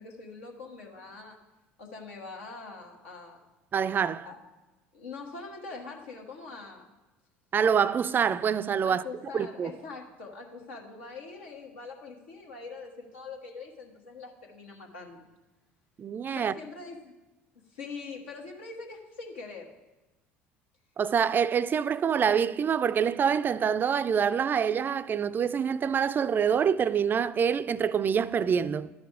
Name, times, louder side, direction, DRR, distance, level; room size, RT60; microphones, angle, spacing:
voice 1, 0.0-1.4 1.8-3.4 4.2-4.4 4.9-6.9 8.8-15.3 16.3-17.1 17.5-19.7, left 4 dB, 80° left, 1.2 m, -43 dB
voice 2, 3.7-4.3 7.5-9.0 9.3-9.7 16.0-16.5 21.0-28.9, right 7 dB, 30° right, 0.3 m, -26 dB
11.5 x 4.8 x 4.9 m
hypercardioid pair, 65°, 6 cm